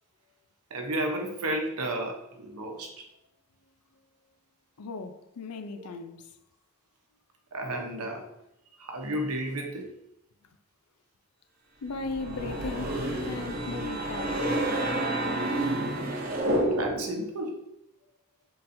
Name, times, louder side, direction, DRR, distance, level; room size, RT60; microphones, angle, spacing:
voice 1, 0.7-3.0 5.7-5.8 7.5-8.3 8.8-9.9 16.8-17.6, right 1 dB, 80° right, 0.8 m, -32 dB
voice 2, 4.8-6.4 11.8-14.7, left 3 dB, 85° left, 0.5 m, -37 dB
sound 1, 11.9-17.2, right 1 dB, 40° right, 0.7 m, -29 dB
3.9 x 2.6 x 4.2 m
head